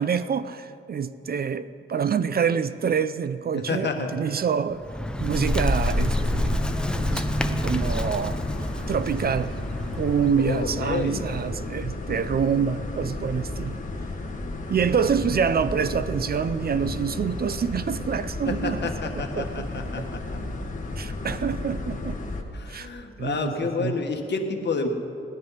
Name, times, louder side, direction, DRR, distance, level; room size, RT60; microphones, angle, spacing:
voice 1, 0.0-4.8 5.2-6.7 7.1-8.4 8.9-9.6 9.9-13.8 14.7-20.1 21.0-22.2 22.7-22.9 23.2-24.0, right 7 dB, 50° right, 0.5 m, -26 dB
voice 2, 3.7-4.1 10.4-11.2 18.5-20.4 22.5-24.9, left 4 dB, 55° left, 1.5 m, -29 dB
Bird, 4.7-10.4, left 1 dB, 5° left, 0.7 m, -27 dB
sound 1, 5.8-22.4, left 2 dB, 40° left, 1.5 m, -33 dB
17.5 x 10.5 x 5.7 m
cardioid pair, 90°, 21 cm